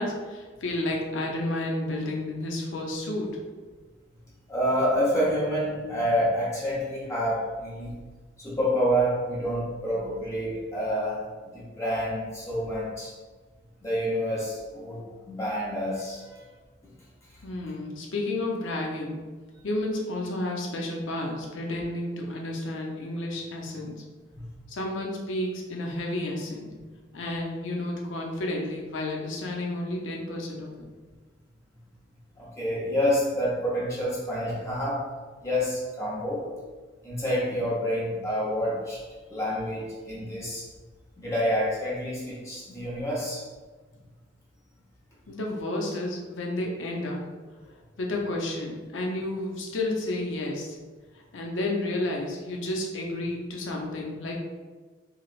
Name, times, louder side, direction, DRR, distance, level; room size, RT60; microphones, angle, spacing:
voice 1, 0.0-3.4 17.4-19.2 19.6-24.0 24.7-26.7 27.1-30.9 45.3-47.2 47.6-50.8 51.1-54.4, left 1 dB, 75° left, 0 dB, 0.6 m, -31 dB
voice 2, 4.5-7.9 8.4-11.3 11.5-13.1 13.8-16.4 24.3-24.5 32.4-35.0 35.4-36.5 37.0-39.0 39.3-40.7 41.2-43.4, equal, 15° left, -7 dB, 0.7 m, -28 dB
3.2 x 2.8 x 2.4 m, 1.4 s
head